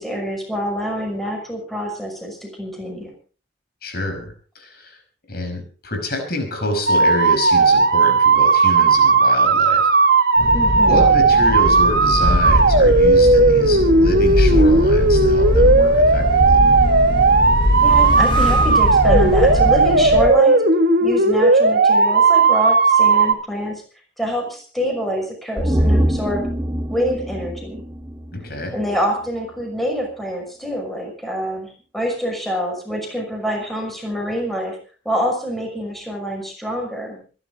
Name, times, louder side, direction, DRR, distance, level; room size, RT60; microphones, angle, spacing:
voice 1, 0.0-3.1 10.5-11.0 17.8-20.6 21.0-23.8 24.2-26.5 26.9-27.8 28.7-31.7 31.9-34.8 35.0-37.2, equal, ahead, 2 dB, 6.0 m, -25 dB
voice 2, 3.8-5.0 5.3-9.9 10.7-16.6 28.3-28.8, left 1 dB, 60° left, 5 dB, 5.4 m, -27 dB
sound 1, 6.9-23.3, right 3 dB, 60° right, 2.1 m, -15 dB
sound 2, 10.4-20.3, left 1 dB, 30° left, 6.0 m, -21 dB
sound 3, 25.6-29.0 29.3-29.4, equal, 15° right, 1.7 m, -23 dB
26.0 x 12.0 x 3.9 m, 0.38 s
head